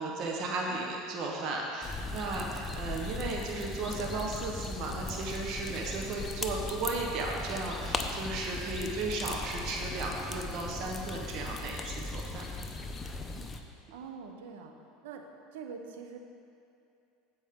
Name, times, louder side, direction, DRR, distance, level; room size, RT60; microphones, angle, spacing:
voice 1, 0.0-12.4, right 3 dB, 55° right, 0 dB, 1.2 m, -35 dB
voice 2, 0.6-0.9 3.1-3.3 13.9-14.7 15.0-15.2 15.5-16.2, right 6 dB, 80° right, 4 dB, 0.9 m, -44 dB
sound 1, 1.8-13.6, left 3 dB, 25° left, 0.7 m, -38 dB
15.0 x 5.3 x 3.7 m, 2.6 s
hypercardioid pair, 95°, 0 cm